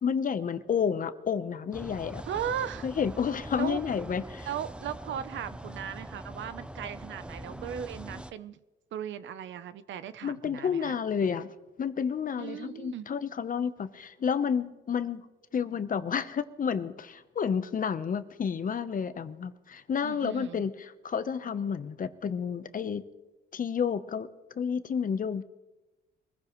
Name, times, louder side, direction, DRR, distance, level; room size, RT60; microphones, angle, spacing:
voice 1, 0.0-2.2 2.8-4.5 10.2-11.5 11.8-15.3 15.5-23.0 23.5-24.3 24.5-25.4, left 7 dB, 45° left, 12 dB, 0.9 m, -30 dB
sound 1, 1.7-8.3, right 1 dB, 5° right, 0.6 m, -43 dB
voice 2, 2.2-2.9 3.6-3.8 4.5-8.6 8.9-11.0 12.4-13.1 20.0-20.6, right 9 dB, 70° right, 14 dB, 0.7 m, -37 dB
24.0 x 15.0 x 3.1 m, 1.0 s
cardioid pair, 90°, 20 cm